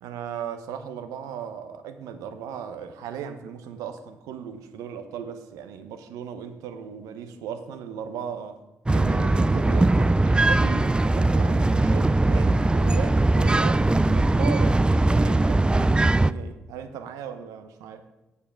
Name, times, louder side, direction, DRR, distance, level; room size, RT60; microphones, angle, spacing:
voice 1, 0.0-8.6 8.9-18.0, right 8 dB, 75° right, 0.8 m, -37 dB
sound 1, 8.9-16.3, right 2 dB, 15° right, 0.4 m, -20 dB
8.6 x 7.1 x 5.7 m
hypercardioid pair, 40°, 6 cm